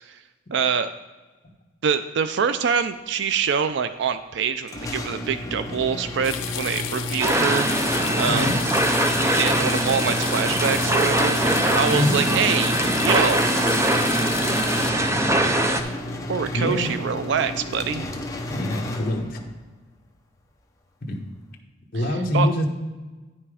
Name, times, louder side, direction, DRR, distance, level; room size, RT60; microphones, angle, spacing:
voice 1, 0.5-0.9 1.8-7.7 8.2-8.5 9.3-11.4 11.7-13.5 16.3-18.0 22.3-22.5, right 6 dB, 60° right, 11 dB, 0.4 m, -25 dB
sound 1, 4.7-19.6, left 1 dB, 15° left, 0.8 m, -32 dB
sound 2, 6.2-14.9, left 11 dB, 75° left, 0.6 m, -33 dB
sound 3, 7.2-15.8, right 1 dB, 15° right, 0.6 m, -22 dB
voice 2, 8.3-8.6 12.0-12.2 16.5-17.0 18.5-19.4 21.1-21.2 21.9-22.7, left 1 dB, 50° left, 0 dB, 1.1 m, -24 dB
9.6 x 5.8 x 4.8 m, 1.3 s
head